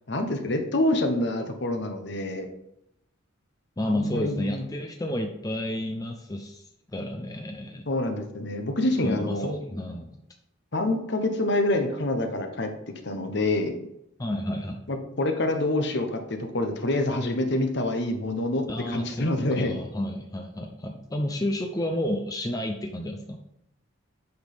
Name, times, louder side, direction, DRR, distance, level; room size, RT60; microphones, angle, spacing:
voice 1, 0.1-2.5 3.8-4.6 7.9-9.5 10.7-12.7 13.0-13.7 14.9-19.8, left 1 dB, 55° left, 6 dB, 1.0 m, -26 dB
voice 2, 3.8-6.6 6.9-7.9 9.0-10.1 14.2-14.8 18.7-23.4, left 1 dB, 20° left, 3 dB, 0.5 m, -31 dB
8.0 x 6.0 x 3.5 m, 0.80 s
head